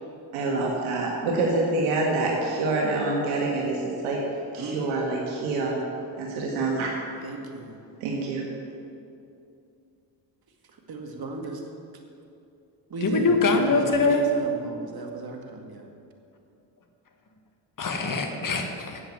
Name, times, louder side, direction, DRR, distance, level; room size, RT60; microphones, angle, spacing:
voice 1, 0.3-4.2 4.5-5.8 6.2-7.1 8.0-8.5, right 2 dB, 90° right, 1.7 m, -26 dB
voice 2, 5.4-5.8 7.2-7.8 10.9-11.6 12.9-15.9, right 2 dB, 45° right, 2.1 m, -35 dB
voice 3, 13.0-14.3 17.8-19.0, left 3 dB, 40° left, 1.7 m, -23 dB
8.7 x 7.8 x 8.2 m
supercardioid pair, 70°, 50 cm